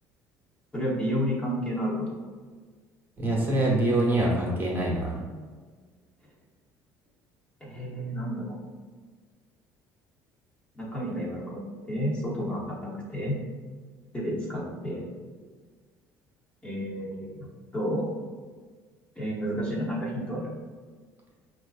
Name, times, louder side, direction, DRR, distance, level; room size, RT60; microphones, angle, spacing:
voice 1, 0.7-2.1 7.6-8.6 10.8-13.4 14.1-15.0 16.6-17.5 17.7-18.1 19.2-20.5, equal, 15° left, -6 dB, 1.0 m, -31 dB
voice 2, 3.2-5.2, right 1 dB, 30° right, -4 dB, 1.1 m, -25 dB
4.7 x 2.5 x 2.4 m, 1.5 s
supercardioid pair, 85°, 7 cm